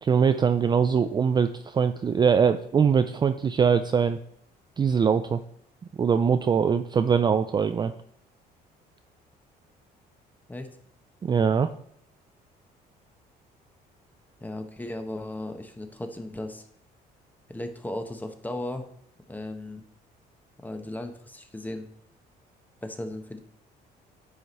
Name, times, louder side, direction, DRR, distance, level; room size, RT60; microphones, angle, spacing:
voice 1, 0.0-4.2 4.8-5.4 6.0-7.9 11.2-11.7, right 6 dB, 25° right, 9 dB, 0.4 m, -22 dB
voice 2, 14.4-16.6 17.5-18.9 19.3-19.8 20.6-21.9 22.8-23.4, left 1 dB, 10° left, 6 dB, 1.1 m, -36 dB
10.5 x 5.0 x 4.2 m, 0.68 s
cardioid pair, 110°, 17 cm